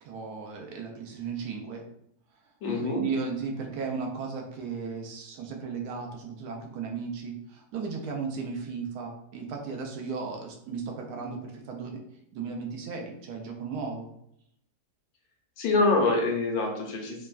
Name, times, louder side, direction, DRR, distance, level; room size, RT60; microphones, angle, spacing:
voice 1, 0.0-1.8 2.8-12.0 12.3-14.1, right 5 dB, 80° right, 1 dB, 1.1 m, -35 dB
voice 2, 2.6-3.0 15.6-17.3, left 3 dB, 75° left, 0 dB, 1.1 m, -25 dB
3.3 x 2.1 x 2.2 m, 0.74 s
omnidirectional pair, 1.7 m